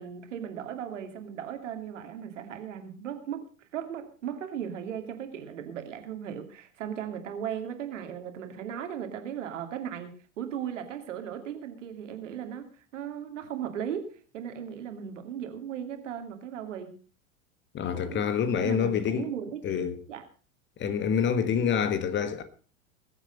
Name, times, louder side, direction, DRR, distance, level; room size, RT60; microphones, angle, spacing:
voice 1, 0.0-3.5 3.7-10.1 10.4-16.9 17.9-18.2 18.5-20.2, right 9 dB, 65° right, 2.6 m, -37 dB
voice 2, 17.7-19.3 19.6-20.0 20.8-22.4, left 7 dB, 25° left, 1.4 m, -27 dB
21.0 x 8.1 x 5.3 m
figure-of-eight pair, 85°, 40 cm